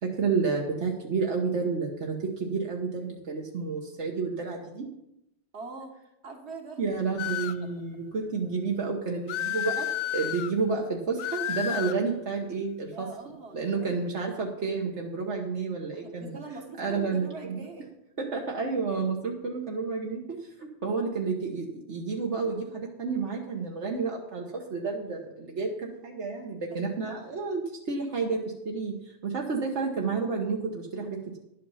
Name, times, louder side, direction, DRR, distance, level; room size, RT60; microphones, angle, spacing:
voice 1, 0.0-4.9 6.8-9.9 10.1-13.1 13.5-16.4 16.8-17.6 18.2-31.4, right 4 dB, 85° right, 0 dB, 1.6 m, -30 dB
voice 2, 5.5-5.9 6.2-6.8 7.6-7.7 10.2-10.3 12.9-13.9 15.9-17.9 26.7-27.3, right 3 dB, 70° right, 3 dB, 2.0 m, -43 dB
sound 1, 7.2-7.7 9.3-10.5 11.2-12.0, left 11 dB, 90° left, 0.9 m, -31 dB
11.0 x 8.4 x 5.6 m, 0.84 s
omnidirectional pair, 1.2 m